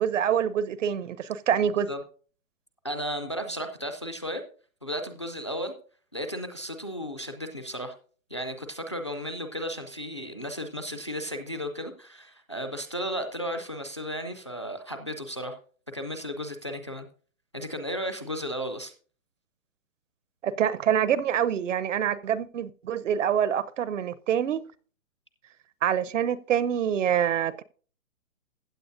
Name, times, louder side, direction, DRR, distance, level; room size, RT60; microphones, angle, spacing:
voice 1, 0.0-1.9 20.4-24.6 25.8-27.6, right 9 dB, 65° right, 0.8 m, -26 dB
voice 2, 2.8-4.4 4.8-5.7 6.1-7.9 8.3-15.6 15.9-17.1 17.5-18.9, equal, 25° left, 0.4 m, -34 dB
15.5 x 8.7 x 2.6 m
hypercardioid pair, 165°, 40 cm